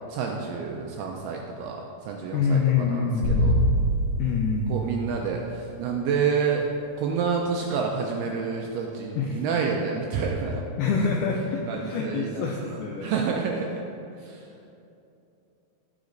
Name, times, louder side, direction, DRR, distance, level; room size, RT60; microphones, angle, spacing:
voice 1, 0.1-3.6 4.7-6.7 7.0-10.6 11.7-13.8 14.2-14.4, right 5 dB, 85° right, 0 dB, 2.3 m, -29 dB
voice 2, 2.3-3.5 4.2-4.8 9.2-9.4 10.8-13.1, left 5 dB, 85° left, 0 dB, 2.2 m, -26 dB
sound 1, 3.2-5.7, equal, 65° left, 2.6 m, -25 dB
14.5 x 5.1 x 3.9 m, 2.7 s
omnidirectional pair, 5.1 m